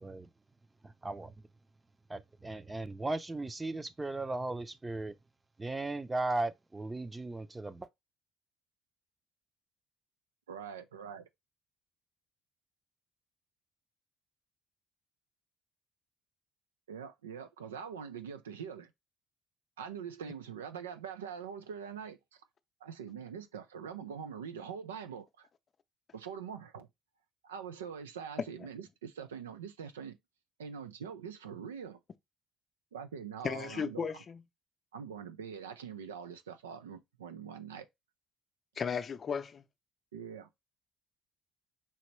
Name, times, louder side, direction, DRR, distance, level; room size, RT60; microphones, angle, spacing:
voice 1, 0.8-1.3 2.1-5.1 5.6-7.9, right 2 dB, 20° right, 0.6 m, -37 dB
voice 2, 10.5-11.3 16.9-18.9 19.8-22.4 22.8-25.5 26.1-26.9 27.4-30.2 30.6-32.0 32.9-34.1 34.9-37.9 40.1-40.5, right 7 dB, 90° right, 0.4 m, -43 dB
voice 3, 33.4-34.4 38.8-39.6, left 6 dB, 45° left, 0.6 m, -35 dB
5.5 x 2.9 x 3.1 m
hypercardioid pair, 55°, 0 cm